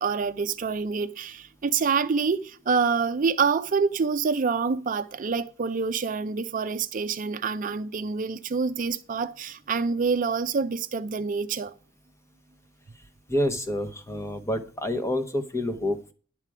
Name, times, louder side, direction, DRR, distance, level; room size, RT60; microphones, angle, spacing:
voice 1, 0.0-11.7, right 5 dB, 45° right, 0.5 m, -26 dB
voice 2, 13.3-16.1, left 1 dB, 15° left, 1.0 m, -28 dB
10.5 x 7.4 x 4.8 m
head